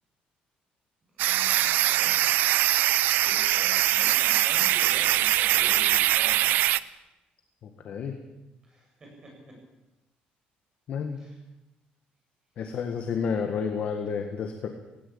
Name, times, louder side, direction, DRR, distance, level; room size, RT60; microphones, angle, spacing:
voice 1, 1.1-2.1 3.2-6.6 8.6-9.3 11.2-11.4 12.6-12.7, right 1 dB, 25° right, 0 dB, 8.0 m, -45 dB
sound 1, 1.2-6.8, right 14 dB, 75° right, 0.6 m, -22 dB
voice 2, 7.6-8.2 10.9-11.2 12.6-14.7, left 6 dB, 45° left, 5 dB, 1.8 m, -30 dB
18.5 x 17.5 x 8.7 m, 0.99 s
cardioid pair, 180°, 3 cm